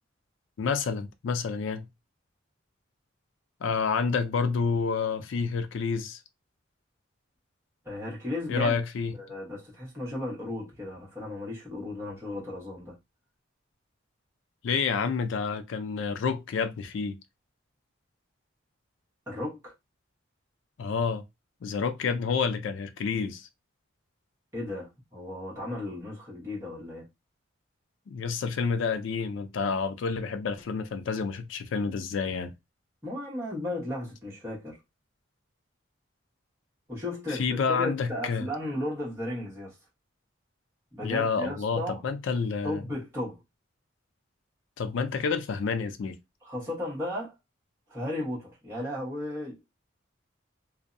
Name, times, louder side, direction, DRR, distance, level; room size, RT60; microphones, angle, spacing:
voice 1, 0.6-1.9 3.6-6.2 8.5-9.1 14.6-17.2 20.8-21.2 21.6-23.5 28.1-32.5 37.3-38.5 41.0-42.8 44.8-46.2, left 5 dB, 70° left, 0.3 m, -29 dB
voice 2, 7.8-8.8 9.1-13.0 19.3-19.7 24.5-27.1 33.0-34.8 36.9-39.8 40.9-42.0 42.6-43.4 46.4-47.3 47.9-49.6, left 1 dB, 15° right, 1.1 m, -35 dB
2.6 x 2.0 x 2.5 m
head